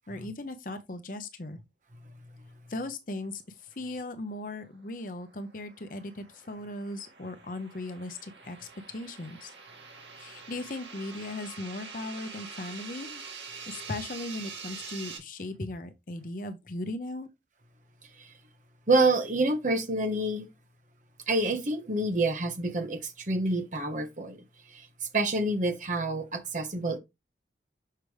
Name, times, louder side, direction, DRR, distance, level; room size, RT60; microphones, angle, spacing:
voice 1, 0.1-1.6 2.7-9.5 10.2-13.2 13.7-17.3, left 2 dB, 45° left, 0.7 m, -38 dB
voice 2, 2.0-2.4 18.2-18.3 18.9-20.5 21.3-24.4 24.7-24.9 25.1-27.0, right 2 dB, 45° right, 1.0 m, -28 dB
sound 1, 4.7-15.2, right 5 dB, 75° right, 2.0 m, -45 dB
6.6 x 4.9 x 3.2 m
head